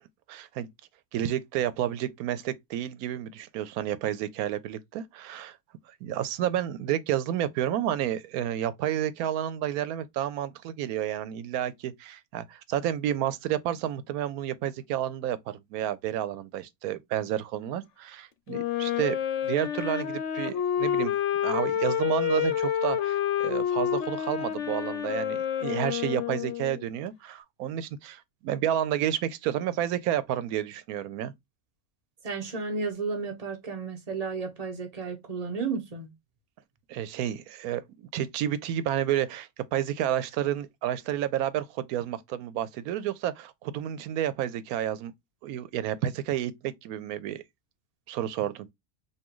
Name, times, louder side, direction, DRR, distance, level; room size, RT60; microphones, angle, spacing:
voice 1, 0.3-0.7 1.1-5.6 5.9-19.2 19.4-21.1 21.4-31.3 36.9-45.1 45.4-47.4 48.1-48.7, right 11 dB, 85° right, 1.1 m, -30 dB
Wind instrument woodwind instrument, 18.5-26.8, left 10 dB, 65° left, 0.9 m, -28 dB
voice 2, 32.2-36.1, right 4 dB, 30° right, 1.1 m, -33 dB
5.5 x 2.6 x 3.0 m
omnidirectional pair, 1.5 m